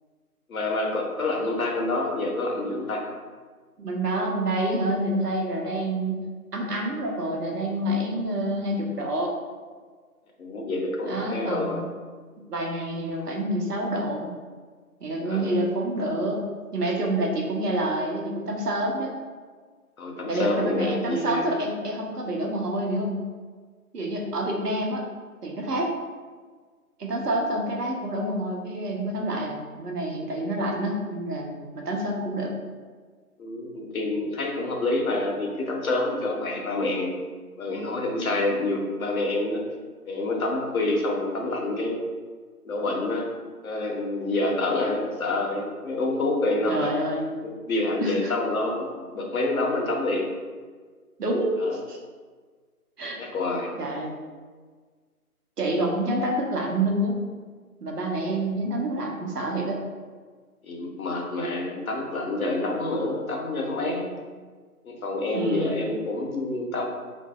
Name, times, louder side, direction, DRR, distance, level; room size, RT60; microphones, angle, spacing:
voice 1, 0.5-3.0 10.4-11.8 15.3-15.6 20.0-21.5 33.4-37.1 37.6-39.6 40.1-42.0 42.6-43.3 43.6-46.8 47.4-48.9 49.1-50.3 51.6-51.8 53.2-53.7 60.6-64.1 64.8-66.9, left 2 dB, 65° left, 0 dB, 0.8 m, -27 dB
voice 2, 3.8-6.2 6.5-9.3 11.1-11.8 12.5-14.3 15.0-16.5 16.7-19.1 20.3-23.2 23.9-25.0 25.4-25.9 27.0-32.5 46.7-47.3 48.0-48.3 51.2-52.0 53.0-53.2 53.8-54.1 55.6-57.2 57.8-59.8 65.3-65.9, right 1 dB, 80° right, 0 dB, 0.9 m, -27 dB
3.9 x 2.6 x 2.3 m, 1.5 s
figure-of-eight pair, 165°, 46 cm